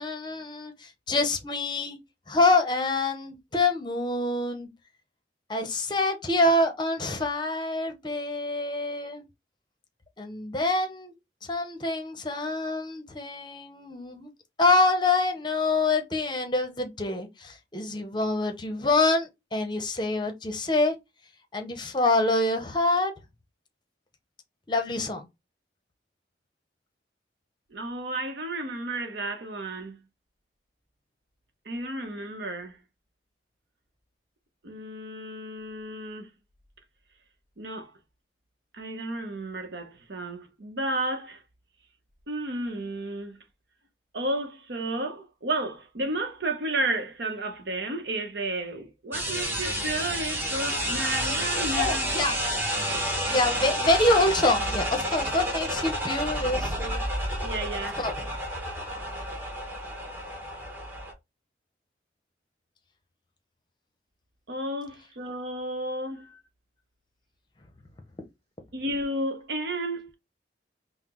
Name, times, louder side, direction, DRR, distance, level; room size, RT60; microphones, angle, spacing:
voice 1, 0.0-2.0 2.3-4.7 5.5-9.2 10.2-11.1 11.4-14.3 14.6-20.9 21.5-23.1 24.7-25.3 51.8-52.4 53.3-57.0 58.0-58.1, left 2 dB, 25° left, 0.7 m, -26 dB
voice 2, 27.7-30.0 31.7-32.8 34.6-36.3 37.6-37.9 38.7-41.4 42.3-43.4 44.1-52.1 57.4-58.0 64.5-66.3 68.7-70.1, right 2 dB, 65° right, 0.8 m, -32 dB
sound 1, 49.1-61.1, equal, 10° right, 0.9 m, -30 dB
5.6 x 2.0 x 2.9 m
head